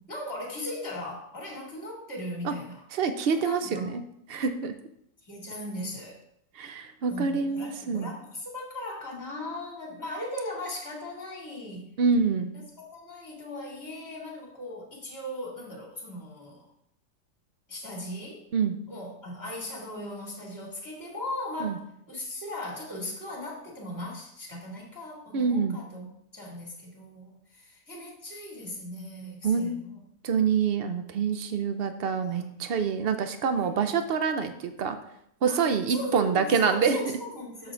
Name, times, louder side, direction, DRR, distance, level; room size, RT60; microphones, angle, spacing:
voice 1, 0.1-2.8 3.3-3.9 5.2-6.2 7.1-11.9 12.8-16.7 17.7-18.4 18.9-21.8 22.1-26.1 26.3-30.0 32.2-32.7 33.5-33.7 35.5-37.7, left 1 dB, 10° left, -4 dB, 2.3 m, -38 dB
voice 2, 2.9-4.0 4.3-4.7 6.5-8.1 12.0-12.5 18.5-18.8 21.6-21.8 25.3-25.8 29.4-29.8 30.2-35.0 35.4-37.0, right 5 dB, 70° right, 9 dB, 0.5 m, -26 dB
6.9 x 6.3 x 3.8 m, 0.73 s
omnidirectional pair, 1.8 m